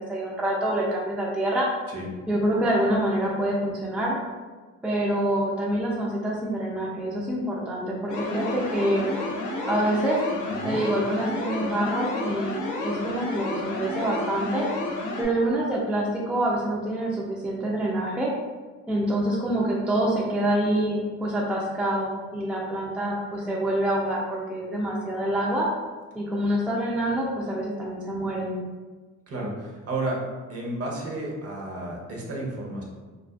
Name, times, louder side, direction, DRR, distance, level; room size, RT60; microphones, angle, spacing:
voice 1, 0.0-1.7 2.3-4.2 4.8-9.1 9.7-10.2 10.6-14.7 15.2-18.3 18.9-25.7 26.1-28.6, right 1 dB, 5° right, -3 dB, 0.3 m, -26 dB
sound 1, 8.1-15.3, left 2 dB, 90° left, 0.6 m, -31 dB
voice 2, 29.3-30.2 30.5-32.8, right 2 dB, 50° right, -2 dB, 0.8 m, -32 dB
2.5 x 2.3 x 2.3 m, 1.4 s
cardioid pair, 90°, 30 cm